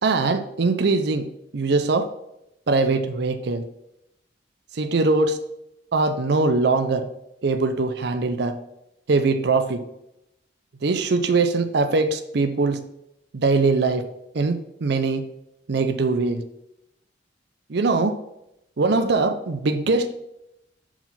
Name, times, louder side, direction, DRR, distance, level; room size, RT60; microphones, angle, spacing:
voice 1, 0.0-1.3 1.5-2.1 2.7-3.6 4.7-5.4 5.9-7.1 7.4-8.6 9.1-9.8 10.8-12.8 13.3-14.0 14.3-15.3 15.7-16.4 17.7-18.1 18.8-20.1, right 3 dB, 65° right, 8 dB, 0.6 m, -21 dB
5.7 x 4.8 x 5.7 m, 0.83 s
head